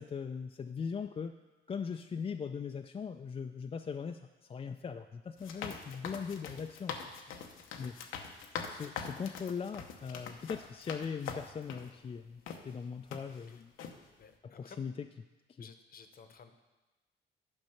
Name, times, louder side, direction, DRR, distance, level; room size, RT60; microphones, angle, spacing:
voice 1, 0.0-1.4 1.7-7.3 7.8-8.0 8.5-13.7 14.4-15.1 15.6-15.7, left 6 dB, 30° left, 6 dB, 0.4 m, -40 dB
sound 1, 5.4-11.9 12.5-12.6 13.1-13.5 13.8-14.0, left 6 dB, 90° left, 0.9 m, -43 dB
voice 2, 7.0-7.4 13.5-13.6 13.9-14.9 15.6-16.6, left 5 dB, 50° left, 8 dB, 0.9 m, -56 dB
11.0 x 5.4 x 5.7 m, 1.2 s
cardioid pair, 90°, 20 cm